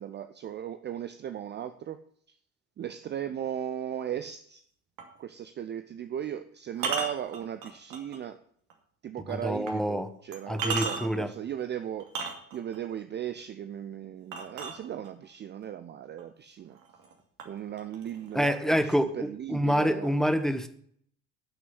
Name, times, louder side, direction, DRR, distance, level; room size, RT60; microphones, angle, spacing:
voice 1, 0.0-2.0 2.8-4.6 5.2-8.4 9.0-12.1 12.5-16.8 17.4-20.1, right 10 dB, 25° right, 0.6 m, -37 dB
sound 1, 5.0-5.2 6.7-8.2 8.7-8.8 9.7-9.8 10.3-11.3 12.0-12.8 14.3-15.3 16.2-16.3 16.7-17.1 17.4-18.4, right 5 dB, 50° right, 2.5 m, -34 dB
voice 2, 9.3-10.1 10.5-11.3 18.3-20.7, equal, ahead, 1.0 m, -27 dB
11.5 x 6.2 x 7.9 m
figure-of-eight pair, 65°, 45 cm